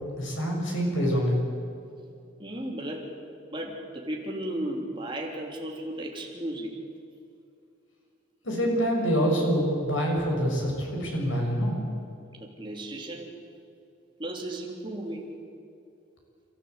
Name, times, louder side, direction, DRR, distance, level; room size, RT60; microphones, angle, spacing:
voice 1, 0.0-1.4 8.4-11.8, equal, 85° left, 0 dB, 6.6 m, -26 dB
voice 2, 2.4-3.1 3.5-6.8 12.4-13.3 14.2-15.3, right 1 dB, 25° right, -1 dB, 3.4 m, -35 dB
29.0 x 14.5 x 8.3 m, 2.5 s
head